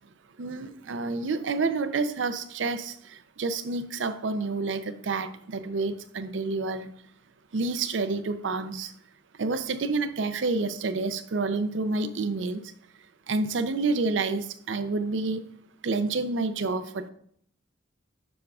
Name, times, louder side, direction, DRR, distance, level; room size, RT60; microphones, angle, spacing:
voice 1, 0.4-6.9 7.5-8.9 9.4-12.6 13.3-15.4 15.8-17.1, right 3 dB, 75° right, 11 dB, 0.5 m, -29 dB
7.0 x 6.2 x 2.4 m, 0.66 s
head